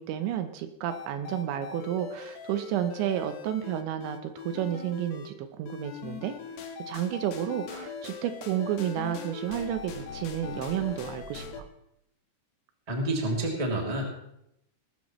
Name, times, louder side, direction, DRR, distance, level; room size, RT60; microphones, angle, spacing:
voice 1, 0.0-6.4 6.9-11.7, right 10 dB, 85° right, 8 dB, 3.1 m, -31 dB
sound 1, 0.9-5.3 5.7-11.6, left 5 dB, 70° left, 3.3 m, -41 dB
voice 2, 12.9-14.1, right 1 dB, 10° right, -1 dB, 1.8 m, -28 dB
19.5 x 13.5 x 3.1 m, 0.80 s
omnidirectional pair, 5.2 m